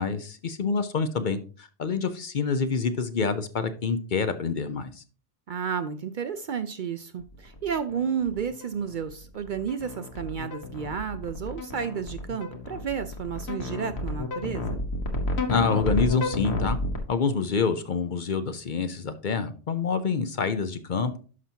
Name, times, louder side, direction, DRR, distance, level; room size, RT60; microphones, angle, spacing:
voice 1, 0.0-5.0 15.5-16.8 17.1-21.2, left 5 dB, 50° left, 10 dB, 0.7 m, -27 dB
voice 2, 5.5-14.8, right 7 dB, 55° right, 11 dB, 0.6 m, -32 dB
sound 1, 7.2-17.0, left 2 dB, 70° left, 1.5 m, -31 dB
11.0 x 5.9 x 2.8 m, 0.38 s
omnidirectional pair, 1.1 m